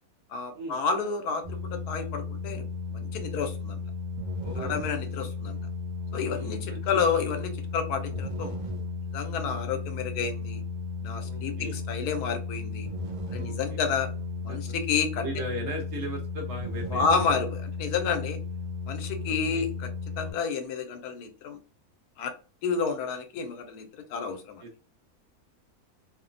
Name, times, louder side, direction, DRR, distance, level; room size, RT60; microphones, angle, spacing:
voice 1, 0.3-3.8 4.6-5.6 6.1-8.6 9.1-10.6 11.0-12.9 13.3-14.1 14.4-15.3 16.9-18.4 18.9-19.9 20.2-21.6 22.2-22.3 22.6-24.6, left 5 dB, 85° left, 6 dB, 1.1 m, -30 dB
sound 1, 1.4-20.3, left 4 dB, 80° right, 1.2 m, -34 dB
voice 2, 4.4-4.8 5.2-5.3 6.2-7.0 11.2-11.8 13.3-13.8 14.5-14.6 15.2-17.1 19.3-19.7 24.6-24.8, right 1 dB, 55° right, 1 dB, 0.9 m, -38 dB
3.0 x 2.1 x 2.5 m, 0.35 s
omnidirectional pair, 1.6 m